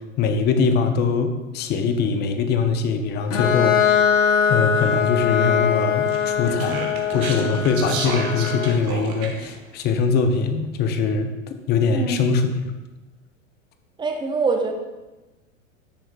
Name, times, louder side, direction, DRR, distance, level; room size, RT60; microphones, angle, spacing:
voice 1, 0.2-3.9 4.5-6.8 7.1-11.3 11.7-12.7, left 5 dB, 25° left, 7 dB, 0.6 m, -22 dB
Bowed string instrument, 3.3-8.9, left 7 dB, 65° left, 0.9 m, -22 dB
Speech, 6.1-9.5, right 4 dB, 45° right, 1.2 m, -31 dB
voice 2, 11.9-12.3 14.0-14.7, right 4 dB, 10° right, 4 dB, 0.7 m, -24 dB
9.8 x 6.2 x 2.3 m, 1.1 s
hypercardioid pair, 100°, 40 cm